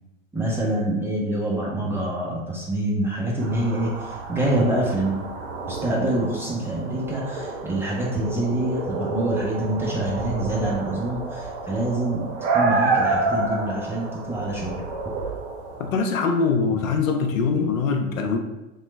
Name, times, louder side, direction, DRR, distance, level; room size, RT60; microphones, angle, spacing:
voice 1, 0.3-5.2 5.7-14.9, right 1 dB, 5° right, -5 dB, 0.5 m, -26 dB
sound 1, 3.4-15.9, right 3 dB, 60° right, 0.7 m, -29 dB
voice 2, 15.8-18.4, left 5 dB, 80° left, 5 dB, 0.6 m, -23 dB
3.0 x 2.2 x 3.1 m, 1.0 s
hypercardioid pair, 95°, 40 cm